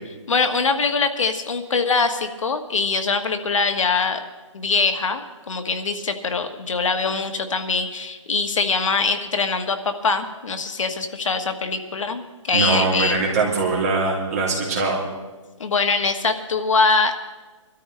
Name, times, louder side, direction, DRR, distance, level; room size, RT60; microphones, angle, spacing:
voice 1, 0.3-4.2 4.5-13.2 15.6-17.1, left 4 dB, 75° left, 6 dB, 1.5 m, -23 dB
voice 2, 12.5-15.0, right 3 dB, 30° right, -3 dB, 2.9 m, -22 dB
23.5 x 13.0 x 3.3 m, 1.2 s
hypercardioid pair, 180°, 16 cm